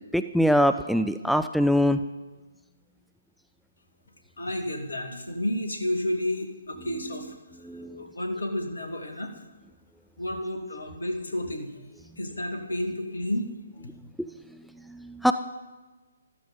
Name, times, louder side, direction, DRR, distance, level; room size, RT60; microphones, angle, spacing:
voice 1, 0.0-2.0 7.7-8.0 14.2-14.3 14.9-15.3, equal, ahead, 9 dB, 0.4 m, -23 dB
voice 2, 4.4-7.4 7.8-9.3 10.2-11.7 12.2-13.5, left 1 dB, 65° left, 4 dB, 2.3 m, -31 dB
14.5 x 13.5 x 5.4 m, 1.3 s
figure-of-eight pair, 135°, 0 cm